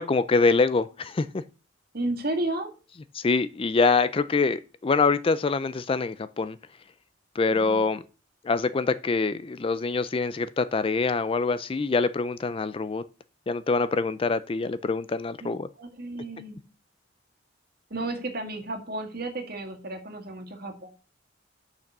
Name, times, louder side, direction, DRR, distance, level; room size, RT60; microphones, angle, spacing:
voice 1, 0.0-1.4 3.1-6.6 7.4-8.0 8.4-13.0 13.5-15.7, left 4 dB, 30° left, 0.4 m, -25 dB
voice 2, 1.9-2.7 7.5-7.8 15.4-15.5 15.8-16.6 17.9-20.9, right 2 dB, 50° right, 2.0 m, -33 dB
6.7 x 5.9 x 6.5 m
head